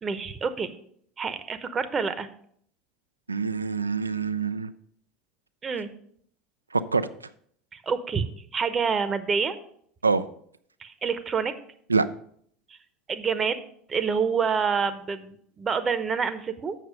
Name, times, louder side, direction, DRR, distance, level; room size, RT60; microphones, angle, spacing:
voice 1, 0.0-0.7 1.2-2.3 5.6-5.9 7.8-8.3 8.5-9.6 10.8-11.5 13.1-13.6 13.9-16.8, right 5 dB, 30° right, 11 dB, 0.8 m, -27 dB
voice 2, 3.3-4.7 6.7-7.1 10.0-10.2 11.9-12.1, right 4 dB, 90° right, 13 dB, 0.4 m, -25 dB
7.4 x 6.4 x 5.1 m, 0.63 s
figure-of-eight pair, 70°, 0 cm